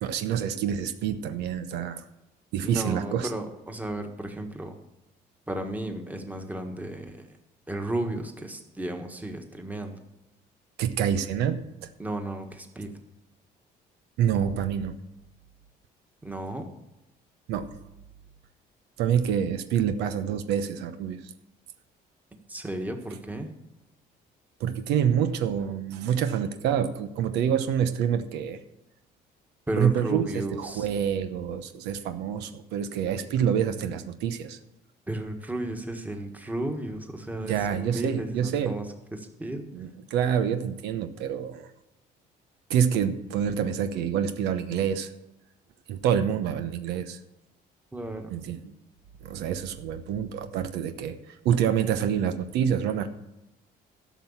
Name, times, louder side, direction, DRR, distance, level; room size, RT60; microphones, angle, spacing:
voice 1, 0.0-2.0 2.5-3.3 10.8-11.9 14.2-14.9 17.5-17.7 19.0-21.2 24.6-28.6 29.8-34.6 37.4-38.7 39.7-41.7 42.7-45.1 45.9-47.2 48.3-48.7 49.2-53.1, right 8 dB, 85° right, 9 dB, 0.9 m, -27 dB
voice 2, 2.6-4.8 5.5-7.2 7.7-10.0 12.0-12.9 16.2-16.7 22.5-23.5 29.7-30.9 35.1-38.8 39.1-39.6 47.9-48.3, right 1 dB, 10° right, 4 dB, 1.6 m, -33 dB
12.5 x 6.1 x 7.3 m, 0.89 s
cardioid pair, 110°, 17 cm